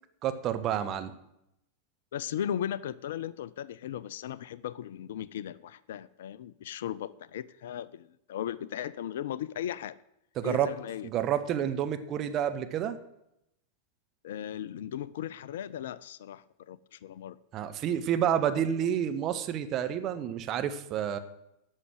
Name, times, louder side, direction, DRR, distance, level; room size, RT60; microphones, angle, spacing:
voice 1, 0.2-1.1 10.4-10.7 11.0-13.0 17.5-21.2, right 9 dB, 35° right, 8 dB, 1.0 m, -29 dB
voice 2, 2.1-10.0 10.4-11.1 14.2-17.4, left 10 dB, 60° left, 19 dB, 0.4 m, -37 dB
11.0 x 6.5 x 7.7 m, 0.82 s
figure-of-eight pair, 90°, 0 cm